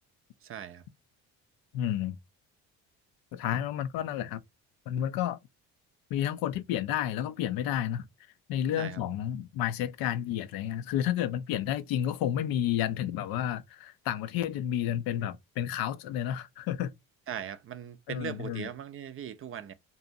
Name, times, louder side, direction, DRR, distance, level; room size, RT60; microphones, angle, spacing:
voice 1, 0.4-0.8 8.8-9.0 17.3-19.7, right 8 dB, 40° right, 0.4 m, -39 dB
voice 2, 1.7-2.2 3.3-4.4 4.9-5.4 6.1-8.1 8.5-16.9 18.1-18.7, left 11 dB, 75° left, 0.5 m, -31 dB
2.6 x 2.1 x 2.6 m
supercardioid pair, 80°, 36 cm